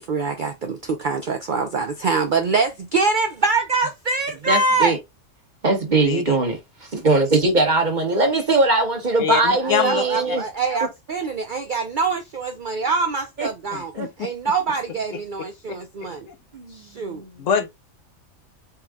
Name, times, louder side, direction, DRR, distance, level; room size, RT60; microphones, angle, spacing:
voice 1, 0.0-5.0 9.6-13.9 14.2-16.3 16.7-17.2, right 4 dB, 55° right, 0.5 m, -24 dB
voice 2, 4.5-5.0 5.6-10.4 13.4-13.5 13.9-14.1 16.5-17.6, right 2 dB, 35° right, 1.2 m, -21 dB
voice 3, 6.0-6.4 9.2-10.0 13.7-14.1 15.7-15.8 16.3-16.4 17.4-17.7, left 7 dB, 70° left, 1.0 m, -24 dB
4.5 x 2.3 x 3.5 m
omnidirectional pair, 1.4 m